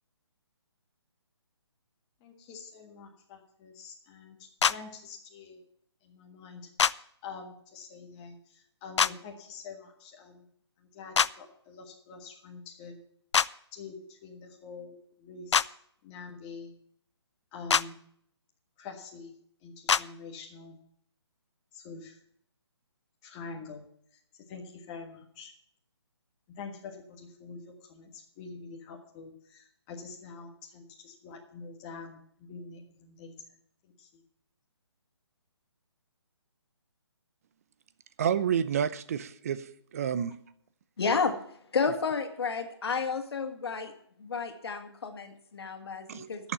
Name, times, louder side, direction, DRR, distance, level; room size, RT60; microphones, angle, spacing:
voice 1, 2.2-5.6 6.0-10.5 10.8-13.0 13.7-15.7 16.0-16.7 17.5-18.0 18.8-19.3 19.6-20.8 21.7-22.2 23.2-23.9 24.1-25.5 26.5-33.6 33.8-34.2, left 4 dB, 20° left, 0 dB, 1.5 m, -46 dB
sound 1, 4.6-4.8 6.8-6.9 9.0-9.1 11.1-11.3 13.3-13.5 15.5-15.7 17.7-17.8 19.9-20.0, left 7 dB, 80° left, 0.5 m, -23 dB
voice 2, 38.2-39.6 39.9-40.4 46.1-46.5, right 8 dB, 35° right, 15 dB, 0.7 m, -29 dB
voice 3, 41.0-41.4 41.7-43.9 44.2-46.4, left 5 dB, 60° left, 6 dB, 2.1 m, -31 dB
10.0 x 7.2 x 9.1 m, 0.66 s
hypercardioid pair, 165°, 15 cm